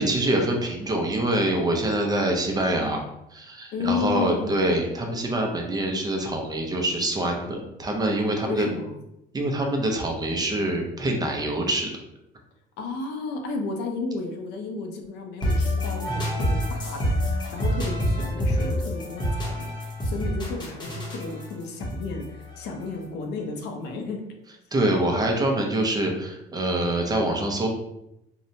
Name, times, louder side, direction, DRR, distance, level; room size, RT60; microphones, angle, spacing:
voice 1, 0.0-3.0 3.3-8.7 9.3-11.9 24.7-27.7, right 1 dB, 25° right, 2 dB, 0.5 m, -25 dB
voice 2, 3.7-4.7 8.4-8.9 12.8-24.2, left 4 dB, 80° left, 3 dB, 0.5 m, -33 dB
sound 1, 15.4-23.2, equal, 25° left, 0.7 m, -27 dB
2.7 x 2.1 x 2.6 m, 0.84 s
cardioid pair, 110°, 17 cm